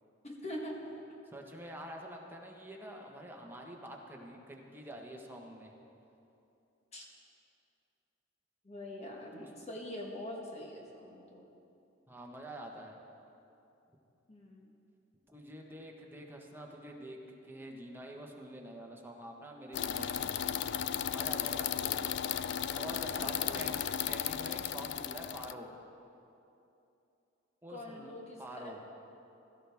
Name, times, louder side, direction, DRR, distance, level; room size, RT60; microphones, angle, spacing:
voice 1, 0.2-0.9 6.9-7.1 8.6-11.5 14.3-14.7 21.8-22.2 23.2-24.0 27.7-28.7, left 1 dB, 35° left, -1 dB, 1.3 m, -44 dB
voice 2, 1.3-5.7 9.3-9.7 12.1-13.0 15.3-20.6 21.1-21.9 22.6-23.8 24.1-25.7 27.6-28.8, right 1 dB, 10° right, 0 dB, 1.2 m, -47 dB
sound 1, 19.7-25.5, left 9 dB, 65° left, 0.4 m, -35 dB
16.5 x 13.0 x 3.5 m, 2.8 s
head